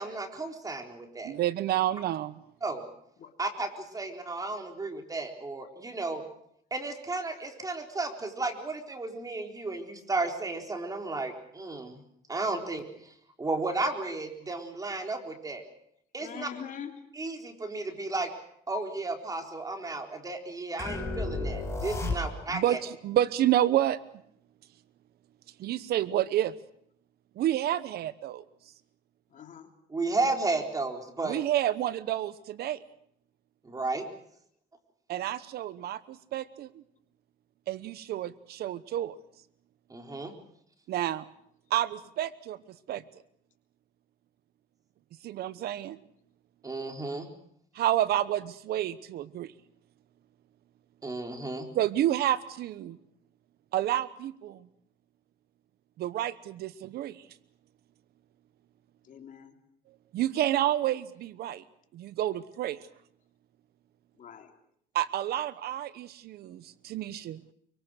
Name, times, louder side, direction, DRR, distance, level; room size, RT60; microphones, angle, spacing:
voice 1, 0.0-1.3 2.6-2.9 3.4-6.2 6.7-12.0 12.3-15.6 16.1-16.5 17.1-18.3 18.7-22.8 29.9-31.4 33.6-34.1 39.9-40.3 46.6-47.3 51.0-51.7, right 3 dB, 20° right, 3 dB, 4.2 m, -33 dB
voice 2, 1.2-2.4 22.0-22.2 22.5-24.0 25.6-26.5 27.4-28.4 31.2-32.8 35.1-36.8 37.7-39.1 40.9-41.3 41.7-42.6 42.9-43.0 45.2-46.0 47.7-49.5 51.7-53.0 53.7-54.7 56.0-57.2 60.1-61.6 61.9-62.8 64.9-67.4, right 12 dB, 70° right, 15 dB, 1.0 m, -29 dB
voice 3, 16.2-16.9 29.3-29.7 59.0-59.5 64.2-64.5, left 8 dB, 50° left, 5 dB, 3.2 m, -43 dB
sound 1, 20.8-22.7, left 2 dB, 15° left, 5.8 m, -33 dB
25.0 x 24.5 x 6.4 m, 0.69 s
cardioid pair, 110°, 17 cm